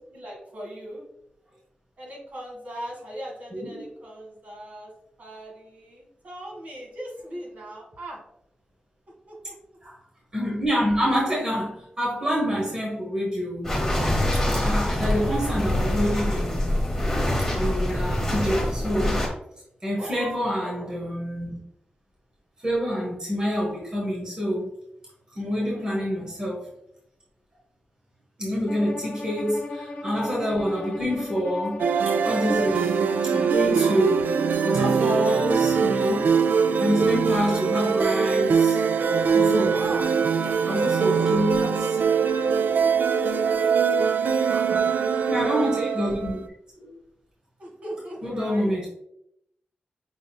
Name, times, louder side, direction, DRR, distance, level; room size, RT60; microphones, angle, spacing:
voice 1, 0.1-1.0 2.0-4.9 5.2-8.2 9.3-9.5 19.9-21.0 25.5-25.9 26.3-26.4 29.0-29.2 38.1-38.6 39.7-40.7 41.0-41.7 42.1-42.8 44.3-45.5 47.6-48.7, right 1 dB, 55° right, -3 dB, 1.7 m, -40 dB
voice 2, 3.5-3.8 9.8-9.9 10.3-13.9 14.3-16.8 17.5-19.2 19.8-21.6 22.6-24.7 25.3-26.7 28.4-36.3 36.8-38.8 39.3-39.9 40.7-41.7 43.4-43.5 44.5-44.8 45.3-46.4 46.8-46.9 48.2-48.9, equal, 25° right, -5 dB, 1.3 m, -27 dB
sound 1, 13.6-19.3, left 1 dB, 10° left, 1.0 m, -25 dB
Bowed string instrument, 28.7-34.3, left 2 dB, 70° left, 0.9 m, -37 dB
sound 2, 31.8-46.4, right 6 dB, 85° right, 0.3 m, -22 dB
5.8 x 3.7 x 2.2 m, 0.77 s
wide cardioid pair, 170°, 3 cm